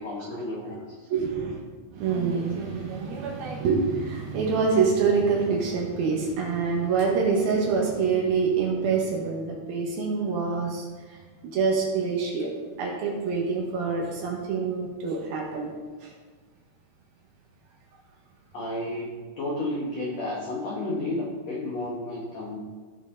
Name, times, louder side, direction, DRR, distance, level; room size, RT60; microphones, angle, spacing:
voice 1, 0.0-1.0 18.5-22.6, left 1 dB, 90° left, -3 dB, 1.4 m, -32 dB
voice 2, 1.1-1.6 2.0-10.9 11.4-12.5 12.8-15.7 16.0-16.1, right 5 dB, 65° right, -1 dB, 2.8 m, -26 dB
16.5 x 6.3 x 3.8 m, 1.4 s
omnidirectional pair, 5.3 m